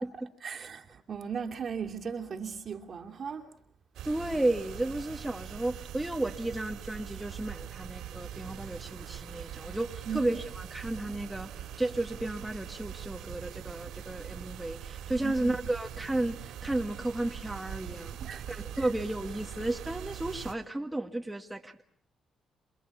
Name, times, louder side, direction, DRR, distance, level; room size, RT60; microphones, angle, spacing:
voice 1, 0.4-3.5 10.1-10.4 15.2-15.6 18.2-18.6, right 6 dB, 50° right, 2.5 m, -37 dB
sound 1, 3.9-20.5, right 10 dB, 80° right, 3.1 m, -42 dB
voice 2, 4.0-11.5 11.8-18.2 18.5-21.9, right 2 dB, 10° right, 1.8 m, -33 dB
28.0 x 21.0 x 7.1 m
cardioid pair, 90°, 0 cm